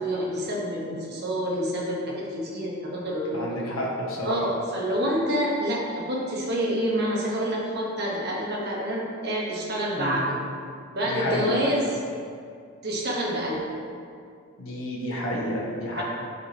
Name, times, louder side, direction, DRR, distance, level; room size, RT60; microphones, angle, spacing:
voice 1, 0.0-3.5 4.2-10.4 10.9-11.9 12.8-13.6 15.9-16.0, equal, 50° right, -3 dB, 1.4 m, -27 dB
voice 2, 3.3-4.4 9.9-10.2 11.0-11.6 14.6-16.0, equal, 70° left, -5 dB, 1.3 m, -30 dB
9.4 x 5.9 x 3.0 m, 2.3 s
head